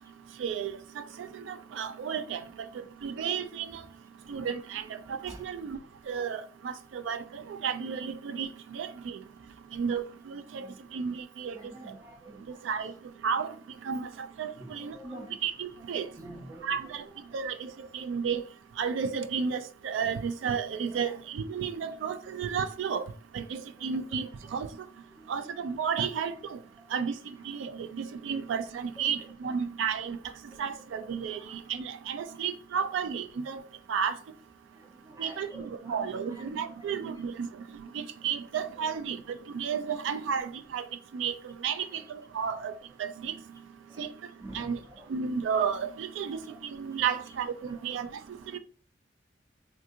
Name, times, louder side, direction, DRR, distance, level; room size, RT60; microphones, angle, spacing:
voice 1, 0.4-1.0 1.5-2.4 3.0-3.7 4.3-5.8 6.1-9.2 9.7-10.7 10.9-11.6 12.6-12.9 13.2-13.5 13.9-14.1 14.4-15.0 15.4-16.1 16.6-17.0 17.3-18.4 18.8-23.1 23.3-24.7 25.3-26.3 26.9-27.1 27.5-30.2 30.6-33.6 33.9-34.1 35.2-37.5 37.9-39.2 39.5-40.8 41.1-41.3 41.6-42.7 43.0-43.3 44.0-44.1 44.5-44.8 45.1-46.4 46.7-48.1 48.5-48.6, right 6 dB, 85° right, 0.3 m, -32 dB
voice 2, 11.5-12.6 14.6-15.4 15.8-15.9 16.2-17.4 20.9-21.2 23.8-24.5 25.2-25.5 27.5-27.6 29.0-29.6 30.5-31.6 32.8-33.0 34.8-37.1 38.6-39.0 39.3-39.4 39.9-40.3 41.7-42.1 43.9-44.1 44.4-45.2 46.2-46.6 47.0-47.3 47.6-48.1, right 1 dB, 20° right, 0.5 m, -50 dB
3.5 x 2.7 x 2.5 m
head